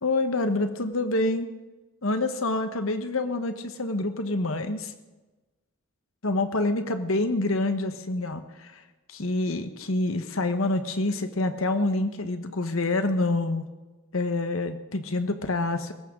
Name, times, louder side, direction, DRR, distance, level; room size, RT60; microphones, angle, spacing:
voice 1, 0.0-1.5 2.0-4.9 6.2-8.8 9.1-13.6 14.1-15.9, left 2 dB, 85° left, 8 dB, 1.3 m, -27 dB
21.0 x 17.5 x 3.9 m, 1.2 s
head